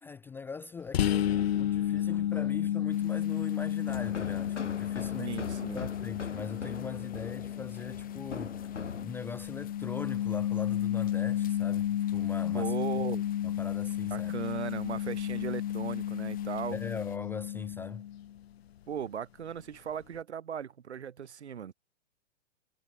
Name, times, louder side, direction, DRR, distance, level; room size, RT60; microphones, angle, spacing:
voice 1, 0.0-12.7 13.4-14.3 16.7-18.0, left 5 dB, 5° left, 0.4 m, -41 dB
sound 1, 0.9-18.4, left 11 dB, 60° left, 0.8 m, -32 dB
sound 2, 2.9-17.2, left 12 dB, 25° left, 5.3 m, -57 dB
sound 3, 3.9-9.1, left 5 dB, 80° left, 2.0 m, -41 dB
voice 2, 5.2-5.9 12.5-13.3 14.1-16.8 18.9-21.7, right 8 dB, 70° right, 1.2 m, -37 dB
figure-of-eight pair, 110°, 35 cm